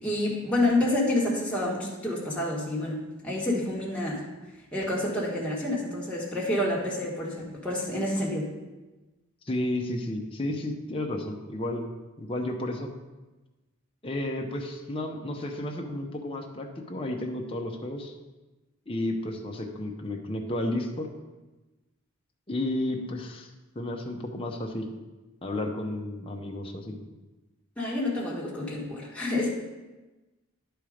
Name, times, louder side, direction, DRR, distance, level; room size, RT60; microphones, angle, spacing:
voice 1, 0.0-4.2 4.7-8.5 27.8-29.5, left 1 dB, 5° left, -5 dB, 1.5 m, -28 dB
voice 2, 9.5-11.9 12.2-12.9 14.0-18.1 18.9-21.1 22.5-23.5 23.8-24.9 25.4-26.9, left 1 dB, 25° left, 1 dB, 0.8 m, -32 dB
11.0 x 4.5 x 5.0 m, 1.1 s
head